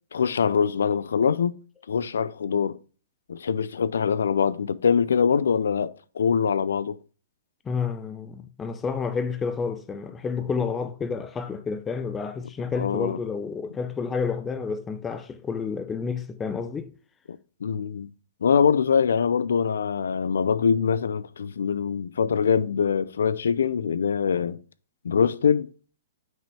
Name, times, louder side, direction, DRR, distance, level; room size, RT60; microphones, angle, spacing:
voice 1, 0.1-1.5 1.9-2.8 3.3-7.0 12.8-13.2 17.3-18.1 18.4-24.6 25.0-25.7, left 6 dB, 85° left, 0.5 m, -23 dB
voice 2, 7.7-16.9, left 5 dB, 10° left, 0.4 m, -30 dB
6.1 x 5.3 x 3.3 m
hypercardioid pair, 170°, 0 cm